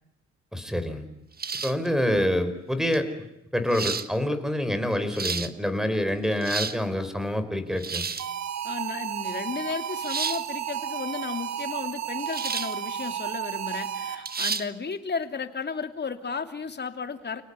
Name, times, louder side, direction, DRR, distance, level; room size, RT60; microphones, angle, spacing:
voice 1, 0.5-1.0 1.6-3.1 3.5-8.1, left 1 dB, ahead, 11 dB, 4.6 m, -26 dB
sound 1, 1.4-1.9 2.9-3.0 3.7-4.1 4.9-5.5 6.2-6.8 7.8-8.3 10.0-10.4 12.3-12.8 13.2-13.3 14.2-14.7, right 5 dB, 30° right, 1.5 m, -31 dB
sound 2, 8.2-14.5, right 10 dB, 65° right, 1.4 m, -33 dB
voice 2, 8.6-17.4, left 5 dB, 35° left, 7 dB, 2.9 m, -34 dB
29.5 x 19.0 x 8.3 m, 0.87 s
cardioid pair, 90°, 30 cm